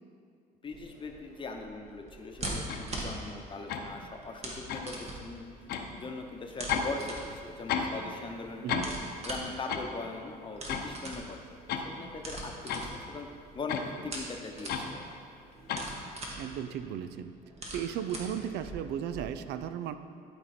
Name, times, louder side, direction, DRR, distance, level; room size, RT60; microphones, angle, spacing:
voice 1, 0.6-5.5 5.9-8.9 9.2-13.3 13.5-15.0, left 3 dB, 30° left, 3 dB, 0.9 m, -41 dB
sound 1, 0.7-19.2, right 1 dB, 40° right, 1.6 m, -43 dB
sound 2, 2.7-2.9 3.7-3.9 4.7-4.9 5.7-5.9 6.7-7.0 7.2-8.0 8.3-8.4 8.7-9.0 9.7-9.9 10.7-10.9 11.5-11.9 12.7-12.9 13.7-13.9 14.7-14.9 15.7-15.9, left 7 dB, 70° left, 0.8 m, -32 dB
voice 2, 16.4-17.3 17.7-20.0, right 9 dB, 75° right, 11 dB, 0.4 m, -35 dB
12.0 x 4.4 x 4.3 m, 2.4 s
cardioid pair, 110°, 17 cm